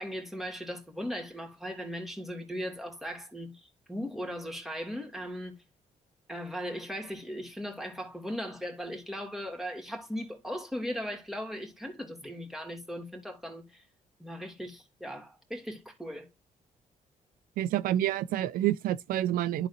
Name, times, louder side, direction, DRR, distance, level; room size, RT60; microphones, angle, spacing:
voice 1, 0.0-5.6 6.3-13.9 14.2-16.3, equal, ahead, 2.5 m, -38 dB
voice 2, 17.6-19.7, right 13 dB, 85° right, 0.4 m, -28 dB
11.5 x 4.1 x 2.7 m
cardioid pair, 80°, 14 cm